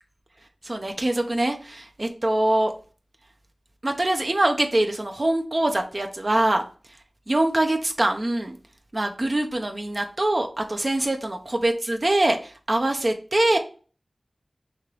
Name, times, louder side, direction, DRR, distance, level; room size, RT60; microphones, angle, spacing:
voice 1, 0.6-2.7 3.8-6.6 7.3-8.5 8.9-13.6, right 1 dB, 45° right, 4 dB, 0.5 m, -23 dB
5.2 x 2.9 x 3.0 m, 0.38 s
wide cardioid pair, 50°, 0 cm